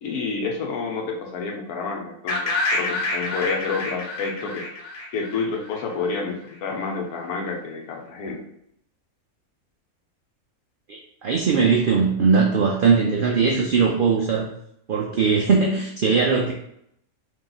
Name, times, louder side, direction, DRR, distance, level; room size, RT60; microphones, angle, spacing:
voice 1, 0.0-4.7 5.1-8.4, left 4 dB, 85° left, 1 dB, 1.2 m, -29 dB
sound 1, 2.3-6.2, left 2 dB, 45° left, 0.7 m, -28 dB
voice 2, 10.9-14.5 14.9-16.5, right 5 dB, 85° right, -1 dB, 0.4 m, -20 dB
3.1 x 2.8 x 3.8 m, 0.74 s
omnidirectional pair, 1.5 m